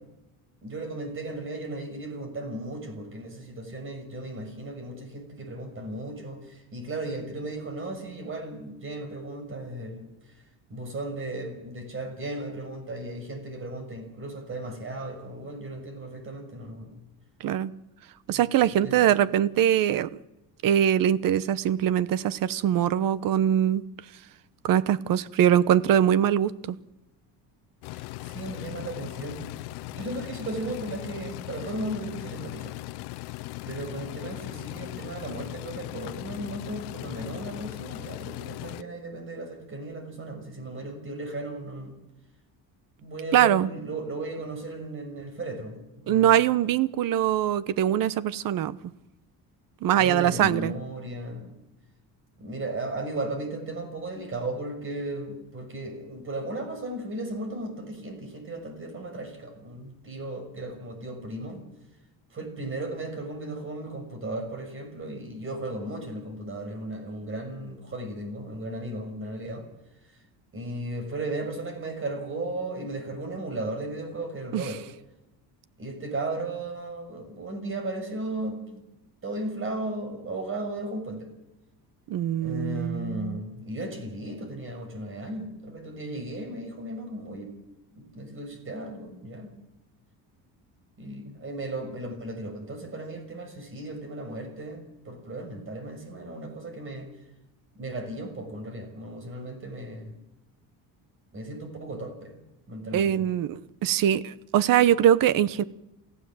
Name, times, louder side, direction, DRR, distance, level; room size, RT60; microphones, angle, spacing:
voice 1, 0.6-10.1 10.7-17.0 18.3-18.4 18.8-18.9 27.9-32.8 33.6-41.9 43.0-45.8 46.0-46.4 50.0-51.5 52.4-61.6 62.3-69.6 70.5-74.8 75.8-78.8 79.2-81.3 82.4-87.5 87.9-89.5 91.0-97.1 97.7-100.2 101.3-102.3 102.7-103.3, right 2 dB, 30° right, 6.3 m, -36 dB
voice 2, 17.4-17.7 18.3-20.1 20.6-23.8 24.6-26.8 43.3-43.7 46.1-48.8 49.8-50.7 74.5-74.7 82.1-83.4 102.9-105.6, right 10 dB, 60° right, 1.0 m, -22 dB
sound 1, 27.8-38.8, left 20 dB, 85° left, 0.7 m, -38 dB
28.5 x 15.5 x 7.7 m
cardioid pair, 130°, 38 cm